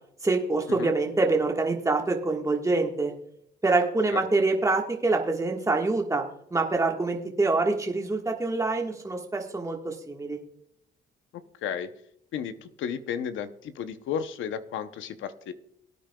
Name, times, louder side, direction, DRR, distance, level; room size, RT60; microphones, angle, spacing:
voice 1, 0.2-3.1 3.6-6.2 6.5-10.4, right 3 dB, 15° right, 1 dB, 1.4 m, -25 dB
voice 2, 12.3-15.5, left 8 dB, 80° left, 10 dB, 0.8 m, -33 dB
19.0 x 9.0 x 2.3 m, 0.72 s
cardioid pair, 90°, 20 cm